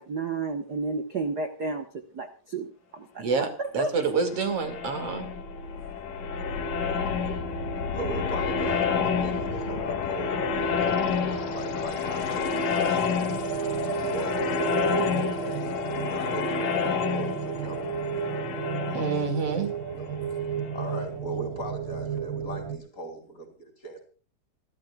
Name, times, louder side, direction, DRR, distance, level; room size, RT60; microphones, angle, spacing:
voice 1, 0.0-3.9, right 3 dB, 65° right, 7 dB, 1.0 m, -32 dB
voice 2, 3.2-3.5 3.7-5.3 18.9-19.7, right 5 dB, 45° right, 6 dB, 3.2 m, -27 dB
sound 1, 4.3-20.9, left 5 dB, 70° left, 3.6 m, -29 dB
sound 2, 6.6-22.8, right 8 dB, 80° right, 3.2 m, -35 dB
voice 3, 7.9-13.5 13.9-18.3 19.1-19.2 20.0-20.2 20.7-24.0, right 1 dB, 25° left, 4 dB, 3.5 m, -40 dB
28.0 x 12.5 x 2.4 m, 0.36 s
omnidirectional pair, 3.9 m